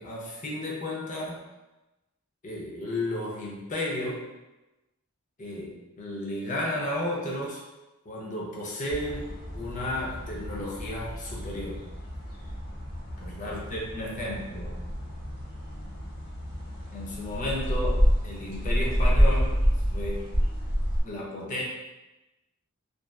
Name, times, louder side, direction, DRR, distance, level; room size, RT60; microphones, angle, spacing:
voice 1, 0.0-1.4 2.4-4.3 5.4-7.6 8.1-11.8 13.2-14.9 16.9-19.6 19.9-20.2 21.0-21.6, left 1 dB, 35° left, -4 dB, 0.5 m, -33 dB
sound 1, 8.9-21.0, equal, 85° left, 1.2 m, -28 dB
2.6 x 2.2 x 2.2 m, 1.0 s
head